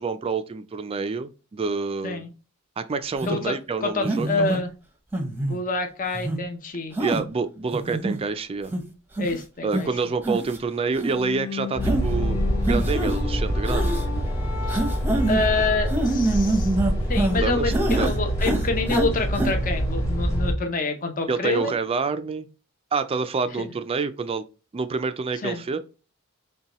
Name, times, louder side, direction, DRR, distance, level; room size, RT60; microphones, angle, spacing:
voice 1, 0.0-2.3 2.8-4.6 7.0-8.7 9.6-12.4 12.7-14.0 17.3-18.1 21.3-22.5 22.9-24.4 24.7-25.8, right 4 dB, 25° right, 0.3 m, -27 dB
sound 1, 3.2-3.4 4.0-4.6 5.1-5.6 6.1-6.4 7.0-7.2 7.7-8.2 8.7-8.8 9.2-9.4 9.7-9.8 10.2-10.6 11.0-11.1 11.8-12.0 12.7-13.2 13.7-14.0 14.7-15.4 15.9-17.4 17.7-18.1 18.4-19.1 19.3-19.5, right 2 dB, 10° right, 0.8 m, -25 dB
voice 2, 3.8-4.7 5.4-6.9 9.2-9.9 14.7-14.8 15.3-16.7 17.1-21.7 23.6-23.7 25.4-25.6, left 3 dB, 40° left, 0.7 m, -27 dB
sound 2, 11.0-16.1, left 6 dB, 80° left, 0.6 m, -36 dB
sound 3, 11.8-20.5, equal, 15° left, 1.5 m, -25 dB
5.5 x 2.2 x 2.9 m
head